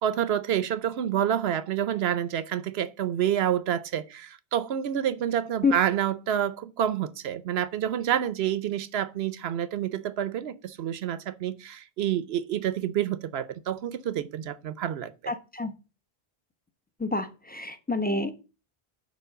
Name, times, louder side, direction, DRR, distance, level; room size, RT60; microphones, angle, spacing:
voice 1, 0.0-15.3, right 10 dB, 80° right, 0.9 m, -28 dB
voice 2, 15.3-15.7 17.0-18.3, left 3 dB, 10° left, 0.8 m, -27 dB
7.0 x 4.7 x 6.7 m
omnidirectional pair, 1.0 m